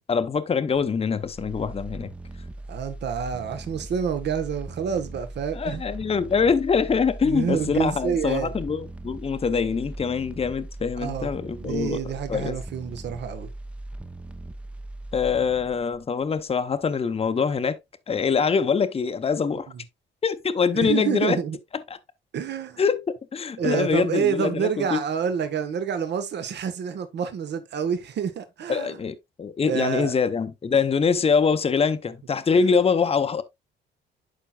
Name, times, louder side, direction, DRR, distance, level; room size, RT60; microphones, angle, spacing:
voice 1, 0.1-2.1 5.5-12.5 15.1-17.8 18.1-19.7 20.2-21.4 22.8-25.0 28.7-33.4, left 5 dB, 30° left, 0.8 m, -24 dB
sound 1, 0.7-16.8 17.2-17.3, right 2 dB, 5° right, 0.7 m, -39 dB
voice 2, 2.7-5.8 7.2-8.5 11.0-11.3 11.6-13.5 20.7-21.6 22.3-22.8 23.6-29.0 29.6-30.1 32.5-32.7, right 7 dB, 60° right, 1.1 m, -28 dB
11.5 x 4.4 x 2.3 m
cardioid pair, 90°, 20 cm